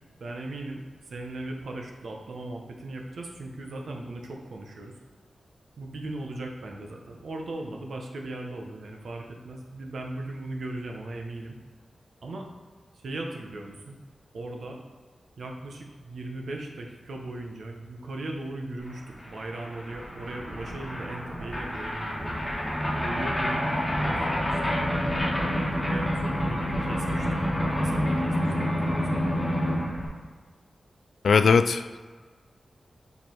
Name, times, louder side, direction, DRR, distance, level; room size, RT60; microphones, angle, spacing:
voice 1, 0.2-4.9 5.8-11.6 12.2-12.5 12.9-13.9 14.3-14.8 15.4-22.3 23.0-29.2, right 2 dB, 65° right, 1 dB, 1.0 m, -38 dB
sound 1, 18.9-19.0 19.2-30.1, equal, 15° left, 1.6 m, -28 dB
voice 2, 31.2-32.0, left 5 dB, 70° left, 11 dB, 0.3 m, -20 dB
5.5 x 4.9 x 4.6 m, 1.4 s
wide cardioid pair, 165°, 0 cm